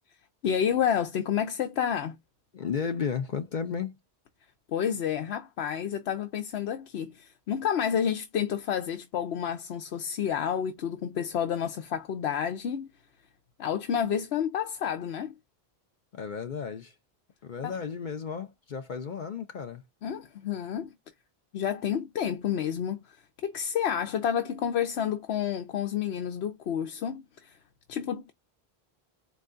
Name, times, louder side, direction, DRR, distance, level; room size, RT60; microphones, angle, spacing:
voice 1, 0.4-2.2 4.7-12.9 13.6-15.3 17.6-17.8 20.0-20.9 21.5-23.2 23.4-27.6 27.9-28.3, left 8 dB, 85° left, 0.9 m, -30 dB
voice 2, 2.5-4.0 16.1-16.9 17.4-19.8, left 6 dB, 55° left, 0.7 m, -33 dB
4.5 x 3.1 x 2.5 m
omnidirectional pair, 1.1 m